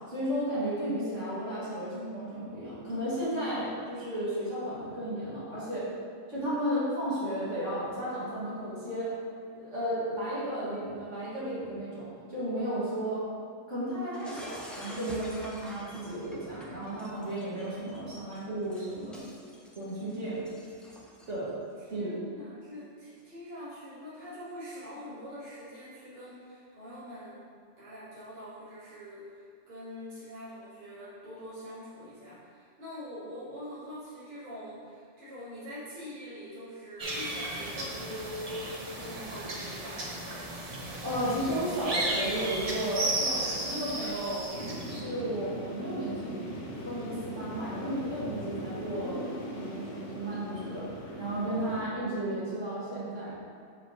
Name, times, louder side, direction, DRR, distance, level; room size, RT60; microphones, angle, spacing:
voice 1, 0.1-5.9 6.3-9.1 9.5-13.2 13.6-19.2 19.8-20.4 21.3-21.5 21.9-22.3 41.0-44.4 44.9-46.4 46.8-49.2 49.5-50.9 51.2-53.3, right 1 dB, 80° right, -10 dB, 2.2 m, -33 dB
Shatter, 14.1-21.5, equal, ahead, 0.4 m, -48 dB
voice 2, 21.8-27.5 27.8-29.4 29.7-40.2, equal, 55° right, -11 dB, 1.7 m, -44 dB
sound 1, 37.0-45.0, right 1 dB, 35° right, 0.7 m, -34 dB
sound 2, 44.5-51.8, equal, 90° left, 1.3 m, -40 dB
6.4 x 5.1 x 3.0 m, 2.1 s
omnidirectional pair, 1.3 m